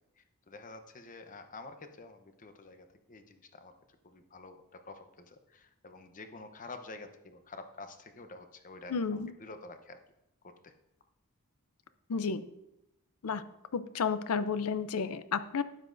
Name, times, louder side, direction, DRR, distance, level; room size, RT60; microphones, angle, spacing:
voice 1, 0.2-9.0 9.4-10.0 10.4-10.7, left 3 dB, 35° left, 7 dB, 0.8 m, -49 dB
voice 2, 8.9-9.3 12.1-12.4 13.2-13.4 13.7-15.6, left 5 dB, 75° left, 13 dB, 0.5 m, -32 dB
12.5 x 9.9 x 2.6 m, 0.88 s
head